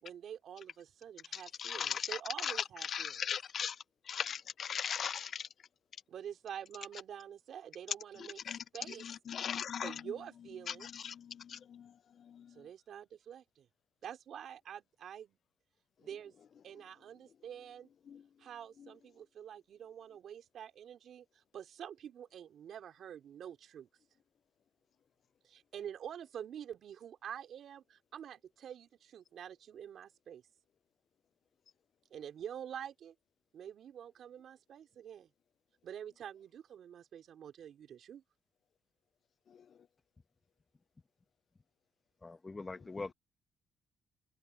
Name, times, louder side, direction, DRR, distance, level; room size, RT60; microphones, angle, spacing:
voice 1, 0.0-3.2 6.1-8.4 8.7-9.1 9.8-10.9 12.5-13.7 14.0-15.4 16.0-16.3 16.6-17.9 18.4-23.9 25.4-30.4 32.1-33.1 33.5-35.3 35.8-38.2, right 9 dB, 65° right, 4.1 m, -47 dB
voice 2, 1.6-2.0 2.9-3.7 4.1-5.4 8.5-8.6 9.3-9.9 11.0-11.1, left 8 dB, 55° left, 0.3 m, -37 dB
voice 3, 42.2-43.1, left 3 dB, 25° left, 1.3 m, -42 dB
cardioid pair, 90°, 0 cm